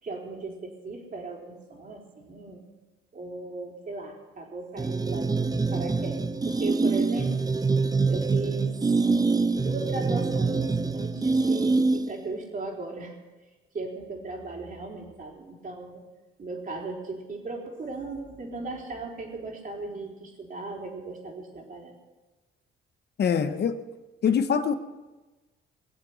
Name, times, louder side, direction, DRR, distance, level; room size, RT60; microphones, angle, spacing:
voice 1, 0.0-2.6 3.1-5.3 5.7-7.5 8.1-8.8 9.6-13.1 13.7-16.0 16.4-22.0, right 3 dB, 45° right, 0 dB, 3.9 m, -37 dB
sound 1, 4.8-12.3, right 4 dB, 20° right, 0.7 m, -25 dB
voice 2, 23.2-23.8 24.2-24.8, left 7 dB, 55° left, 11 dB, 1.1 m, -23 dB
22.0 x 8.0 x 6.2 m, 1.2 s
cardioid pair, 90°, 20 cm